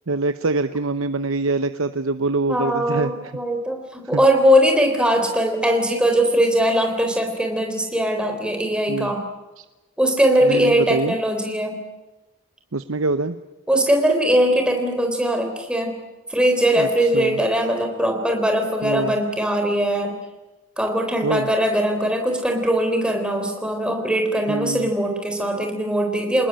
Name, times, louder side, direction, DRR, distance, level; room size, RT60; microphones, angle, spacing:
voice 1, 0.1-3.3 4.1-4.2 8.9-9.1 9.6-9.7 10.4-11.2 12.7-13.4 16.7-17.4 18.8-19.2 21.2-21.5 24.5-24.9, right 3 dB, 75° right, 10 dB, 0.8 m, -24 dB
voice 2, 2.5-9.2 10.0-11.8 13.7-16.0 16.3-20.2 20.8-26.5, equal, 5° right, 3 dB, 3.8 m, -20 dB
27.0 x 20.0 x 8.9 m, 1.1 s
head